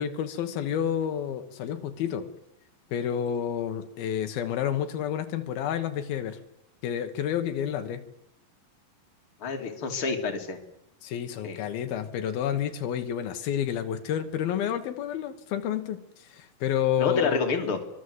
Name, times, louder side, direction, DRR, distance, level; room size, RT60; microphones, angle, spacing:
voice 1, 0.0-2.3 2.9-6.4 6.8-8.0 11.0-17.4, left 9 dB, 85° left, 8 dB, 3.2 m, -29 dB
voice 2, 9.4-10.6 11.4-11.6 17.0-17.8, left 4 dB, 40° left, 3 dB, 3.3 m, -28 dB
24.0 x 21.0 x 8.1 m, 0.84 s
omnidirectional pair, 4.2 m